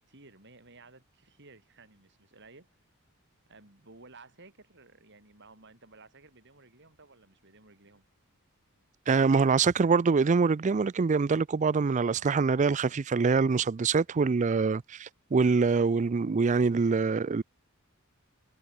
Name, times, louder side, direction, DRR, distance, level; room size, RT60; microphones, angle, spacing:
voice 1, 0.0-2.7 3.5-8.0 12.0-12.3, right 3 dB, 55° right, 4.7 m, -55 dB
voice 2, 9.1-17.4, right 4 dB, 35° right, 0.4 m, -25 dB
head